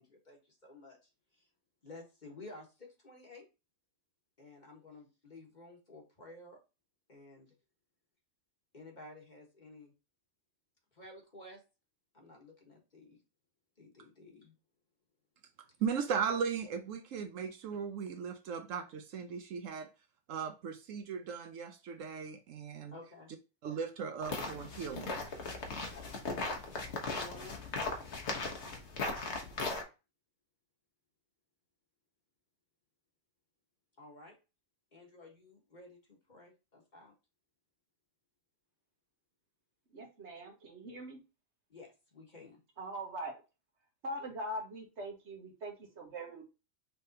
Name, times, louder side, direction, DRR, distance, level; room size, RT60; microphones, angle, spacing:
voice 1, 0.0-1.5 1.8-3.5 4.4-6.6 7.1-7.5 8.7-9.9 10.9-11.6 12.1-13.2 13.8-14.5 22.9-23.3 26.0-27.7 34.0-34.4 34.9-37.1 41.7-42.6, left 2 dB, 35° left, 1.4 m, -53 dB
voice 2, 15.8-19.9 20.3-22.9 23.6-25.1, right 6 dB, 70° right, 1.0 m, -37 dB
sound 1, 24.2-29.8, left 3 dB, 55° left, 1.3 m, -38 dB
voice 3, 39.9-41.2 42.8-43.4 44.0-46.4, right 1 dB, 55° right, 1.3 m, -42 dB
5.7 x 3.4 x 2.7 m
omnidirectional pair, 1.4 m